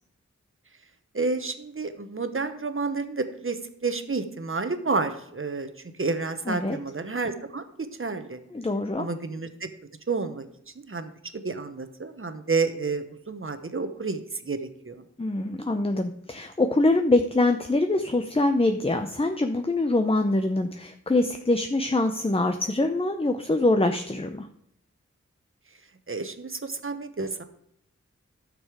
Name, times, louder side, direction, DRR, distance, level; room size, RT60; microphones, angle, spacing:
voice 1, 1.1-5.7 6.0-8.4 9.0-9.7 10.1-10.4 10.7-15.0 26.1-27.4, right 4 dB, 45° right, 9 dB, 1.1 m, -30 dB
voice 2, 6.5-6.8 8.5-9.1 15.2-24.5, left 2 dB, 20° left, 6 dB, 0.7 m, -24 dB
11.5 x 6.6 x 5.0 m, 0.74 s
wide cardioid pair, 55°, 29 cm